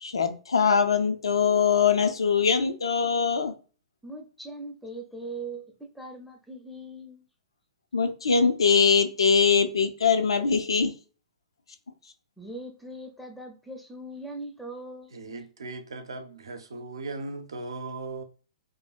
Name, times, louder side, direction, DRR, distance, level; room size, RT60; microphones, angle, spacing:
voice 1, 0.0-3.5 7.9-10.9, left 6 dB, 70° left, 0.4 m, -22 dB
voice 2, 4.0-7.2 12.4-15.4, right 2 dB, ahead, 0.5 m, -40 dB
voice 3, 15.1-18.2, right 3 dB, 65° right, 0.5 m, -38 dB
2.7 x 2.5 x 2.3 m
figure-of-eight pair, 115°, 3 cm